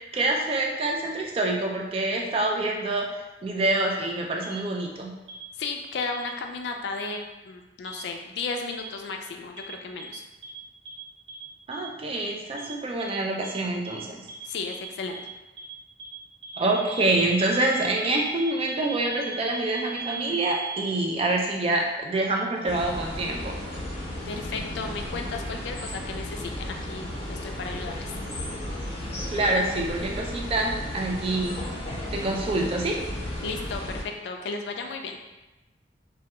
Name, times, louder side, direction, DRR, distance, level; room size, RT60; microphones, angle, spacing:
voice 1, 0.1-3.1 3.4-5.1 11.7-14.2 16.6-23.5 29.3-31.6 32.1-33.0, right 2 dB, 30° right, 0 dB, 0.3 m, -26 dB
sound 1, 4.4-4.5 5.3-5.4 6.1-6.2 7.0-7.1 7.8-7.9 8.7-8.8 9.6-9.7 10.0-10.1 10.4-10.5 10.8-10.9 11.3-11.4 11.7-11.8 12.1-12.2 12.6-12.7 13.0-13.1 13.4-13.5 13.8-13.9 14.3-14.4 14.7-14.8 15.1-15.2 15.6-15.7 16.0-16.1 16.4-20.8, right 3 dB, 75° right, 0.6 m, -37 dB
voice 2, 5.6-10.2 14.4-15.2 24.3-28.1 33.4-35.2, left 4 dB, 75° left, 3 dB, 0.3 m, -34 dB
sound 2, 22.6-34.0, left 1 dB, 35° left, 0.7 m, -34 dB
2.2 x 2.2 x 2.8 m, 1.1 s
head